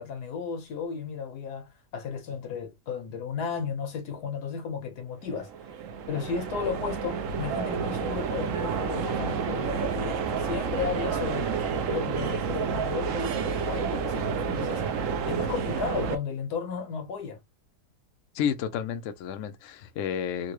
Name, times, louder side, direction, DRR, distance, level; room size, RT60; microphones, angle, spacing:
voice 1, 0.0-5.5 6.1-11.5 11.9-14.8 15.3-17.4, left 6 dB, 85° left, 1.6 m, -34 dB
sound 1, 5.3-16.2, right 6 dB, 65° right, 1.0 m, -30 dB
voice 2, 18.3-20.5, left 8 dB, 65° left, 0.8 m, -31 dB
3.9 x 2.2 x 3.0 m
omnidirectional pair, 1.7 m